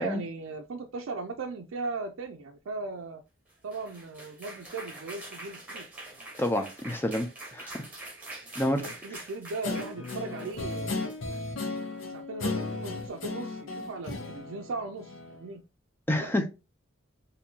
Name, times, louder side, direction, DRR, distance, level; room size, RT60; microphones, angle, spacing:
voice 1, 0.0-3.2 3.6-5.8 8.8-11.0 12.1-15.6 16.2-16.3, right 3 dB, 80° right, 3 dB, 0.4 m, -38 dB
sound 1, 3.5-11.8, right 2 dB, 10° right, 1.3 m, -45 dB
voice 2, 6.4-7.7 8.6-8.8 9.1-9.2 16.1-16.5, left 1 dB, 10° left, 6 dB, 0.5 m, -28 dB
Guitar, 9.6-15.4, left 3 dB, 75° left, 0.8 m, -35 dB
4.2 x 2.7 x 2.7 m, 0.28 s
head